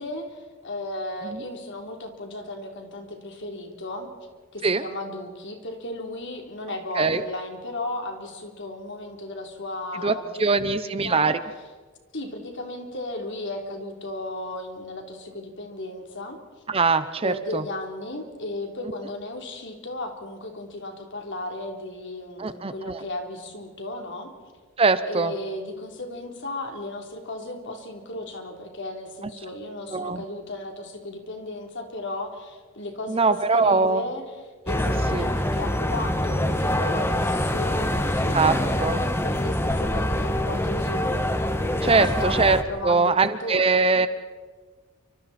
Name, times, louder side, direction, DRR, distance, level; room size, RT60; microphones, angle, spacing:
voice 1, 0.0-4.1 4.5-11.3 12.1-16.4 17.2-24.3 25.1-37.8 38.1-41.1 41.8-41.9 42.2-42.4 42.6-43.9, left 2 dB, 55° left, 3 dB, 3.4 m, -35 dB
voice 2, 10.0-11.4 16.7-17.6 22.4-22.9 24.8-25.3 29.9-30.2 33.1-34.0 35.1-35.3 38.3-38.5 38.8-39.0 41.8-42.6 42.8-44.1, right 4 dB, 25° right, 12 dB, 0.7 m, -22 dB
sound 1, 34.7-42.6, left 1 dB, 10° left, 1.1 m, -25 dB
29.5 x 25.5 x 4.3 m, 1.4 s
head